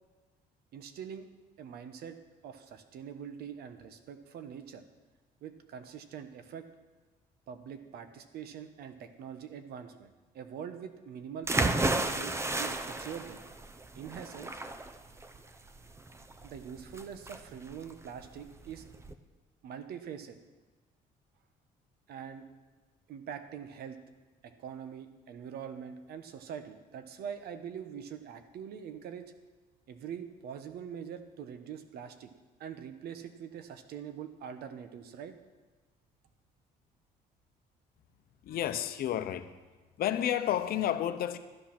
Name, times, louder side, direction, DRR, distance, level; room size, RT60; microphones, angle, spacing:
voice 1, 0.7-1.3 1.6-2.2 2.4-4.8 5.4-6.7 7.5-10.1 10.3-13.4 13.9-14.5 16.4-18.9 19.6-20.4 22.1-22.4 23.1-24.0 24.4-29.2 29.9-32.3 32.6-35.3, right 8 dB, 70° right, 1.1 m, -43 dB
sound 1, 11.5-19.1, right 2 dB, 15° right, 0.7 m, -33 dB
voice 2, 38.4-39.5 40.0-41.4, left 11 dB, 65° left, 0.8 m, -31 dB
12.5 x 8.7 x 6.0 m
cardioid pair, 110°, 17 cm